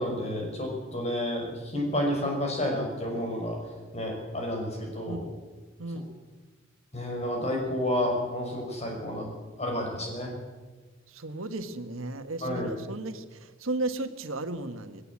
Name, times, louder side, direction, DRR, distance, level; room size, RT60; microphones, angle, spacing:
voice 1, 0.0-3.6 3.9-5.2 6.9-9.3 9.6-10.3 12.4-12.7, left 1 dB, 30° left, 1 dB, 5.9 m, -30 dB
voice 2, 5.8-6.1 11.1-15.0, right 2 dB, 80° right, 8 dB, 1.7 m, -35 dB
19.0 x 17.5 x 8.6 m, 1.3 s
head